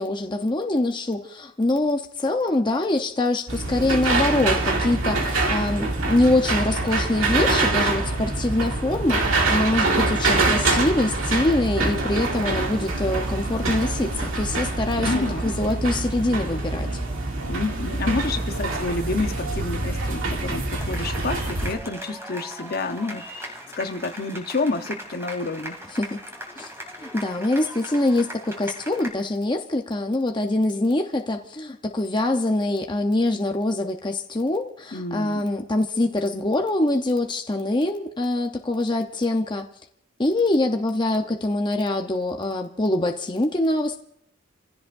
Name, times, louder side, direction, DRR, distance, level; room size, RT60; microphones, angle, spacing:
voice 1, 0.0-15.1 15.4-16.9 26.0-26.2 26.6-26.7 27.0-39.7 40.2-44.0, left 2 dB, 20° left, 0.8 m, -24 dB
sound 1, 3.5-21.7, right 2 dB, 75° right, 2.4 m, -25 dB
voice 2, 15.0-15.5 17.5-23.5 23.8-25.8 34.9-35.5, left 3 dB, 50° left, 0.9 m, -29 dB
sound 2, 20.7-29.1, equal, 15° right, 2.6 m, -38 dB
29.5 x 16.0 x 2.6 m
head